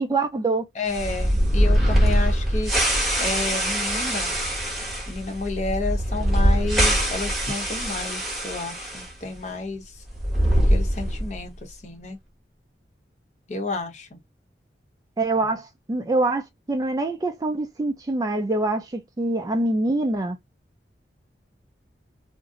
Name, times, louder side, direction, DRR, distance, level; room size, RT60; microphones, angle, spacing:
voice 1, 0.0-0.6 15.2-16.4 16.7-20.4, right 2 dB, 20° right, 0.3 m, -24 dB
voice 2, 0.7-2.7 3.2-4.3 5.1-10.0 10.7-12.2 13.5-14.2, left 3 dB, 40° left, 0.7 m, -31 dB
sound 1, 0.9-9.1 9.3-9.4 10.1-11.4, equal, ahead, 0.9 m, -23 dB
2.5 x 2.0 x 3.6 m
head